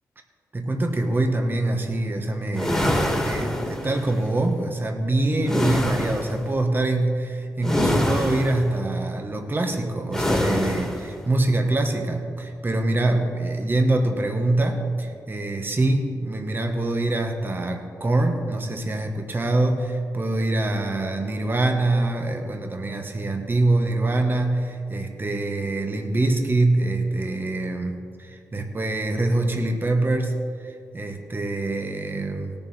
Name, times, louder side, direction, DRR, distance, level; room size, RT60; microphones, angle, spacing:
voice 1, 0.5-2.9 3.2-32.5, right 2 dB, 30° right, 3 dB, 1.3 m, -24 dB
sound 1, 2.5-4.1 5.4-6.4 7.6-8.7 10.1-11.1, left 1 dB, 5° left, 2.1 m, -24 dB
18.0 x 7.0 x 4.3 m, 2.3 s
cardioid pair, 60°, 7 cm